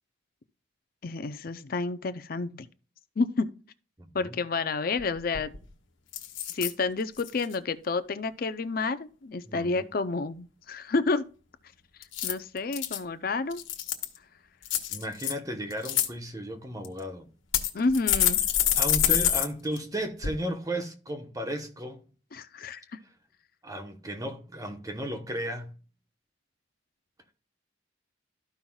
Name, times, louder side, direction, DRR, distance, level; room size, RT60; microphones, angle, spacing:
voice 1, 1.0-2.7 3.2-3.5 4.1-5.5 6.5-11.3 12.2-13.6 17.7-18.4 22.3-23.0, left 3 dB, 50° left, 0.5 m, -30 dB
voice 2, 4.0-4.3 9.5-9.9 14.9-17.3 18.7-22.0 23.6-25.8, right 1 dB, 20° right, 1.0 m, -34 dB
sound 1, 5.0-5.1 5.3-5.7 6.1-6.7 7.2-7.5 12.0-13.0 13.5-14.2 14.7-15.3 15.7-16.1 16.8-16.9 17.5-19.5 19.8-19.9 20.2-20.3, left 11 dB, 90° left, 1.2 m, -26 dB
13.5 x 5.6 x 2.3 m
head